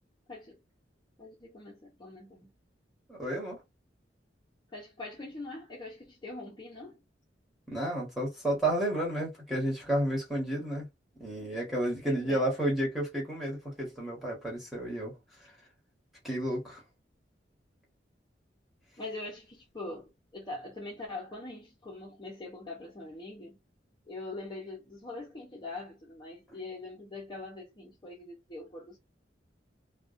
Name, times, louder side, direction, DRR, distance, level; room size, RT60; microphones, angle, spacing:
voice 1, 0.3-0.6 1.2-2.5 4.7-7.0 12.0-12.5 19.0-23.6 24.1-29.0, left 2 dB, 25° left, 0.6 m, -43 dB
voice 2, 3.1-3.6 7.7-10.9 11.2-15.1 16.2-16.8, right 1 dB, ahead, 1.2 m, -31 dB
2.3 x 2.2 x 2.4 m
head